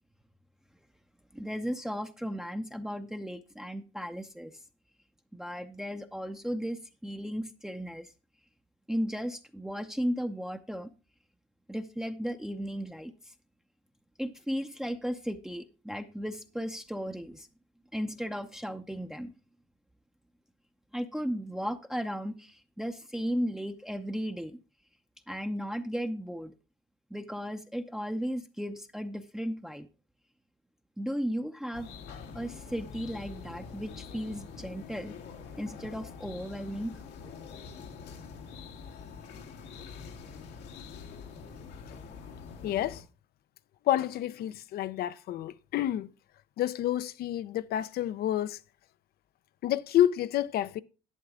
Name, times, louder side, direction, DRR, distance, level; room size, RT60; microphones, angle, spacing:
voice 1, 1.3-4.5 5.3-8.1 8.9-10.9 11.7-13.3 14.2-17.5 17.9-19.3 20.9-24.6 25.3-26.5 27.1-29.9 31.0-31.9 32.3-35.1 35.6-37.0, equal, 5° right, 0.7 m, -35 dB
sound 1, 31.7-43.0, left 5 dB, 85° left, 1.7 m, -45 dB
voice 2, 42.6-43.0 43.9-46.1 46.6-48.6 49.6-50.8, left 12 dB, 65° left, 0.6 m, -29 dB
11.0 x 8.2 x 3.7 m
cardioid pair, 110°, 17 cm